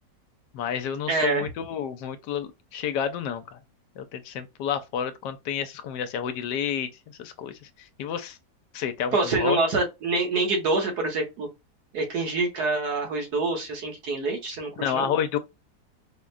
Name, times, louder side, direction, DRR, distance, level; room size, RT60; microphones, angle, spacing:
voice 1, 0.5-3.6 4.0-6.9 7.2-8.4 8.7-9.6 14.8-15.4, left 8 dB, 80° left, 1.2 m, -30 dB
voice 2, 1.1-1.5 9.1-11.5 11.9-15.1, right 3 dB, 65° right, 1.7 m, -26 dB
4.8 x 2.2 x 2.4 m
omnidirectional pair, 1.9 m